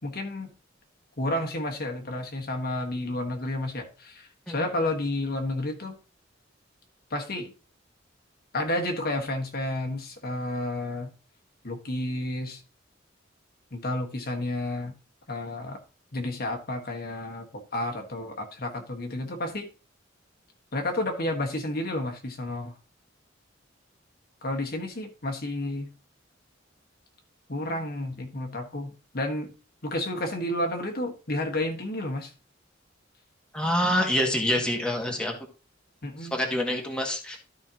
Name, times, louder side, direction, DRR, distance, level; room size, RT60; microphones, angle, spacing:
voice 1, 0.0-0.5 1.2-6.0 7.1-7.5 8.5-11.1 11.6-12.6 13.7-14.9 15.3-15.8 16.1-19.7 20.7-22.7 24.4-25.9 27.5-29.5 29.8-32.3 36.0-36.4, left 1 dB, 55° left, 1.5 m, -31 dB
voice 2, 33.5-35.3 36.3-37.4, equal, 5° left, 1.7 m, -26 dB
13.0 x 5.5 x 2.9 m
head